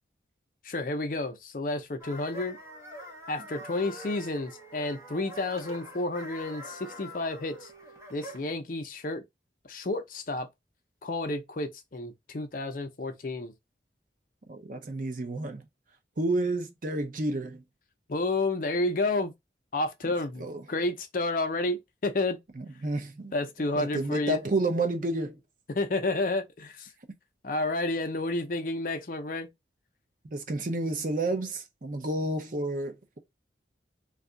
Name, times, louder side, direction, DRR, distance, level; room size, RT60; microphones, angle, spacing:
voice 1, 0.6-2.6 3.3-7.7 8.1-9.2 9.7-10.5 11.0-13.5 18.1-19.3 19.7-22.4 23.3-24.4 25.7-26.9 27.4-29.5, left 2 dB, 45° left, 0.5 m, -30 dB
sound 1, 2.0-8.5, equal, 15° right, 0.8 m, -45 dB
voice 2, 14.5-15.6 16.2-17.6 20.4-20.6 22.6-23.3 23.6-25.4 30.3-33.2, right 2 dB, 45° right, 0.6 m, -30 dB
2.6 x 2.3 x 3.7 m
head